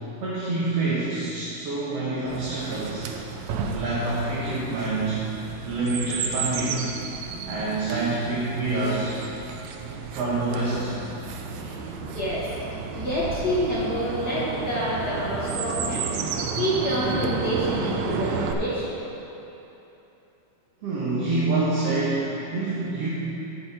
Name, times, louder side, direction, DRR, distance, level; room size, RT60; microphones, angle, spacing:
voice 1, 0.2-3.1 3.7-5.2 5.7-6.9 7.5-9.1 10.1-10.9 20.8-23.1, right 2 dB, 55° right, -8 dB, 2.0 m, -26 dB
Chirp tweet, 2.3-18.5, right 5 dB, 90° right, 1.5 m, -32 dB
voice 2, 12.1-12.5 12.9-16.1 16.6-19.0, equal, 65° left, -9 dB, 1.0 m, -27 dB
16.0 x 5.5 x 4.4 m, 3.0 s
omnidirectional pair, 3.9 m